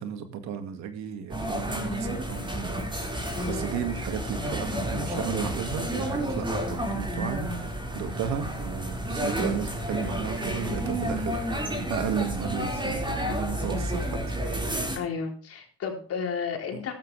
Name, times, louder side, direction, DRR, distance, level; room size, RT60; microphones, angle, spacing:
voice 1, 0.0-3.2 3.5-14.2 14.5-14.6 16.7-16.8, right 7 dB, 60° right, 8 dB, 2.3 m, -34 dB
sound 1, 1.3-15.0, right 1 dB, 15° right, 5.1 m, -30 dB
voice 2, 15.0-16.9, left 6 dB, 50° left, 2 dB, 4.3 m, -32 dB
15.0 x 12.5 x 3.5 m, 0.41 s
supercardioid pair, 75°, 30 cm